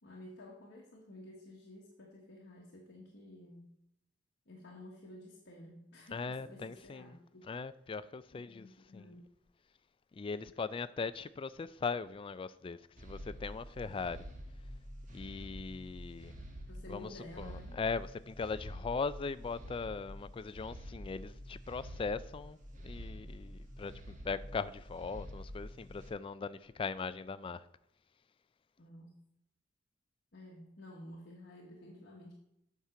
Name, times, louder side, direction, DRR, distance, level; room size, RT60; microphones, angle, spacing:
voice 1, 0.0-3.7 4.5-7.5 8.3-9.3 16.7-17.8 28.8-29.2 30.3-32.3, left 1 dB, 60° left, 1.3 m, -52 dB
voice 2, 6.1-7.1 7.5-8.7 8.9-9.1 10.1-14.3 15.1-16.4 16.9-17.1 17.4-27.7, left 4 dB, 25° left, 0.3 m, -39 dB
sound 1, 13.0-26.1, equal, 40° right, 1.3 m, -48 dB
8.3 x 5.9 x 4.9 m
head